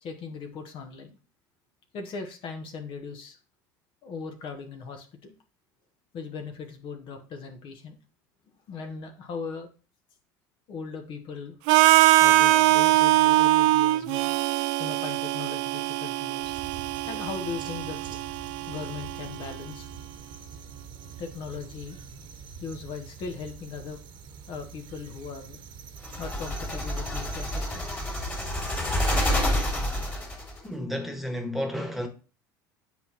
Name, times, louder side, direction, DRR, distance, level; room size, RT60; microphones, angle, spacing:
voice 1, 0.0-1.2 1.9-3.4 4.0-5.3 6.1-8.0 8.7-9.7 10.7-11.5 12.2-14.3 14.8-16.6 17.1-18.2 18.7-19.9 21.2-22.0 22.6-24.0 24.5-25.6 26.2-27.8 30.5-30.7, left 5 dB, 50° left, 1.1 m, -38 dB
Harmonica, 11.7-19.6, right 17 dB, 65° right, 0.4 m, -22 dB
sound 1, 16.4-30.1, right 6 dB, 45° right, 1.1 m, -44 dB
sound 2, 26.0-30.6, left 1 dB, 15° left, 2.4 m, -28 dB
voice 2, 30.6-32.1, left 1 dB, ahead, 1.5 m, -31 dB
7.6 x 4.3 x 2.9 m
hypercardioid pair, 80°, 11 cm